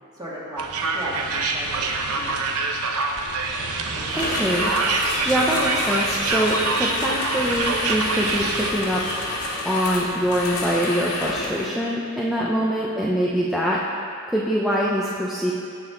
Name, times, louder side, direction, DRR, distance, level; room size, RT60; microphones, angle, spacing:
voice 1, 0.1-2.4 3.9-4.8 12.4-12.7, right 1 dB, 20° right, -7 dB, 2.4 m, -37 dB
sound 1, 0.6-8.7, right 3 dB, 85° right, 0.9 m, -26 dB
sound 2, 3.4-9.5, right 2 dB, 55° right, 2.1 m, -34 dB
sound 3, 4.1-11.7, left 2 dB, 80° left, 1.9 m, -29 dB
voice 2, 4.1-4.7 5.2-9.0 9.6-13.8 14.3-15.5, equal, ahead, -5 dB, 0.7 m, -24 dB
17.5 x 6.3 x 3.9 m, 2.4 s
head